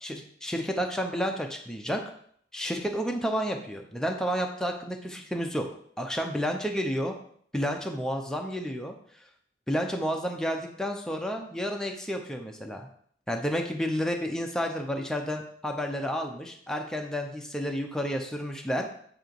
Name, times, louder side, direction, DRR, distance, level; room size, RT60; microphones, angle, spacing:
voice 1, 0.0-2.0 2.5-5.7 6.0-7.1 7.5-8.9 9.7-12.9 13.3-18.9, equal, 5° left, 2 dB, 0.6 m, -31 dB
7.6 x 2.9 x 4.6 m, 0.62 s
head